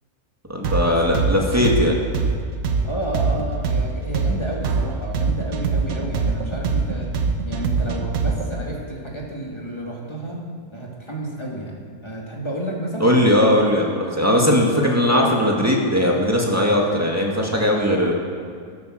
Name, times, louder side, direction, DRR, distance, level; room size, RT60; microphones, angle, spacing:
voice 1, 0.5-2.0 13.0-18.1, left 1 dB, 10° right, -2 dB, 2.0 m, -19 dB
sound 1, 0.6-8.6, right 4 dB, 70° right, 1.4 m, -22 dB
voice 2, 2.8-7.1 7.4-10.4 10.7-13.1, right 1 dB, 20° left, -3 dB, 2.5 m, -31 dB
14.0 x 11.0 x 6.5 m, 2.1 s
omnidirectional pair, 1.5 m